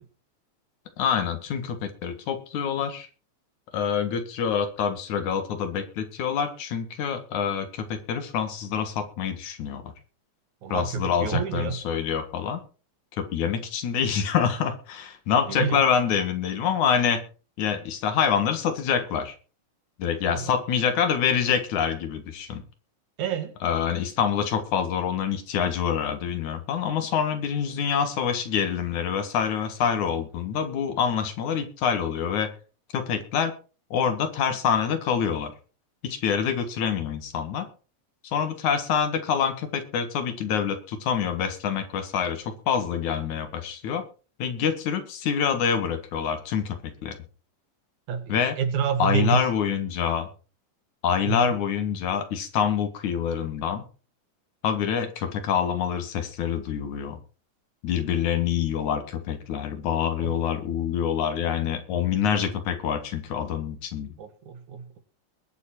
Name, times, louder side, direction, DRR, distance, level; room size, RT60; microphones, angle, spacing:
voice 1, 1.0-3.1 3.7-9.9 10.7-12.6 13.2-17.2 17.6-19.3 20.0-22.6 23.6-32.5 32.9-33.5 33.9-35.5 36.0-37.7 38.2-44.0 44.4-47.2 48.3-48.6 49.0-50.3 51.0-53.8 54.6-57.2 57.8-64.1, left 7 dB, 85° left, 8 dB, 3.1 m, -26 dB
voice 2, 10.6-11.8 15.5-15.8 20.3-20.5 23.2-23.5 48.1-49.4 51.3-51.5 60.2-60.3 64.2-65.0, right 7 dB, 80° right, 9 dB, 3.1 m, -28 dB
21.0 x 7.3 x 4.4 m, 0.35 s
omnidirectional pair, 3.3 m